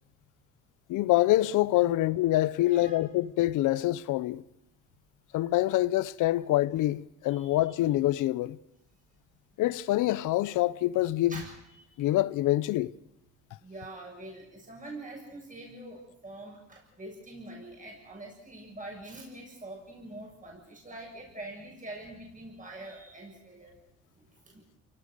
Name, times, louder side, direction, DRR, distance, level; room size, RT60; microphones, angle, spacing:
voice 1, 0.9-4.4 5.3-8.6 9.6-11.4 12.0-12.9, left 15 dB, 90° left, 0.7 m, -26 dB
voice 2, 2.6-3.0 5.3-5.5 6.3-6.4 7.3-7.5 11.3-11.9 13.6-23.8 24.2-24.6, right 1 dB, 25° right, 7.1 m, -45 dB
28.5 x 18.0 x 6.7 m
cardioid pair, 90°, 30 cm